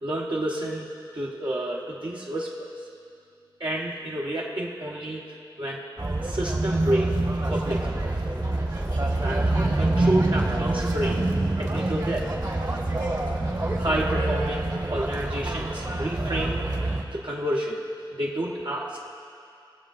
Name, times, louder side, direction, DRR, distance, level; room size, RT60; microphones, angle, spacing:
voice 1, 0.0-0.9 1.1-2.7 3.6-5.2 5.6-5.8 6.2-7.1 7.5-8.0 8.8-8.9 9.2-12.3 13.4-17.8 18.1-19.0, right 1 dB, 65° right, -5 dB, 1.0 m, -30 dB
sound 1, 6.0-17.0, right 2 dB, 45° right, 1.2 m, -26 dB
19.0 x 7.4 x 2.5 m, 2.4 s
wide cardioid pair, 75°, 9 cm